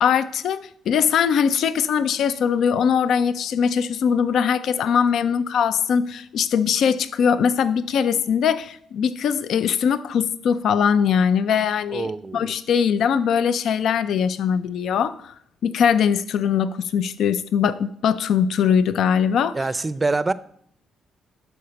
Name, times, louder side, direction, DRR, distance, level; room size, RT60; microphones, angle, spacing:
voice 1, 0.0-15.3 15.6-19.6, left 7 dB, 70° left, 0.5 m, -21 dB
voice 2, 11.9-12.5 19.5-20.3, right 3 dB, 20° right, 0.5 m, -25 dB
11.5 x 4.2 x 5.8 m
cardioid pair, 90°, 0 cm